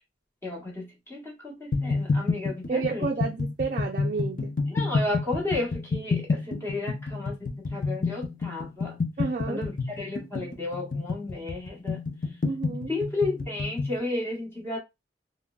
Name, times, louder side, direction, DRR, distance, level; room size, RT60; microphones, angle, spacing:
voice 1, 0.4-3.1 4.7-9.0 9.4-12.0 12.9-14.8, left 2 dB, 15° left, 1.2 m, -33 dB
sound 1, 1.7-14.0, left 3 dB, 50° left, 0.5 m, -29 dB
voice 2, 2.7-4.5 9.2-9.6 12.4-12.9, right 4 dB, 45° right, 0.4 m, -30 dB
3.6 x 2.0 x 2.3 m
head